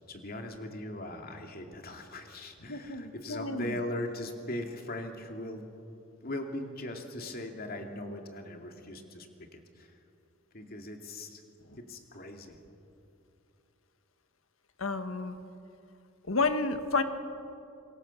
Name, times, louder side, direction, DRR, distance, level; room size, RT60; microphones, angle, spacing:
voice 1, 0.1-5.7 6.2-10.0 10.5-11.4 11.8-12.6, left 1 dB, 45° left, 4 dB, 2.5 m, -39 dB
voice 2, 2.7-3.8 14.8-15.3 16.3-17.0, left 3 dB, 80° left, 8 dB, 1.6 m, -30 dB
26.5 x 23.0 x 7.1 m, 2.7 s
head